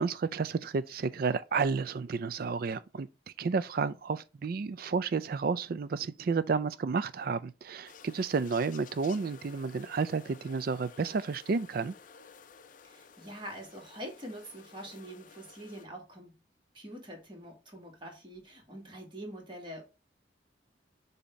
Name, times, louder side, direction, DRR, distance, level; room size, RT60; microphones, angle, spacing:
voice 1, 0.0-3.1 3.4-11.9, right 5 dB, 55° right, 0.4 m, -31 dB
sound 1, 7.8-15.9, left 6 dB, 45° left, 0.5 m, -54 dB
voice 2, 12.8-16.3 16.7-19.8, equal, 25° right, 2.1 m, -45 dB
6.9 x 2.8 x 5.2 m
head